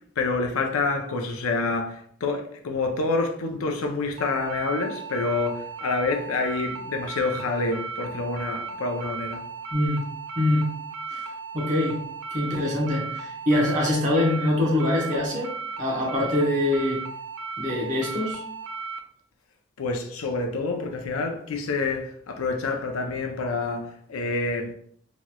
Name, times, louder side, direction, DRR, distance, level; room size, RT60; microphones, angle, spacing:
voice 1, 0.2-9.4 19.8-24.7, left 3 dB, 85° left, 0.5 m, -27 dB
sound 1, 4.2-19.0, right 4 dB, 75° right, 0.4 m, -36 dB
voice 2, 9.7-10.1 10.3-10.7 11.1-11.2 11.5-12.0 12.3-17.1 17.6-18.4, left 1 dB, 35° right, 0.8 m, -24 dB
3.0 x 2.9 x 2.2 m
head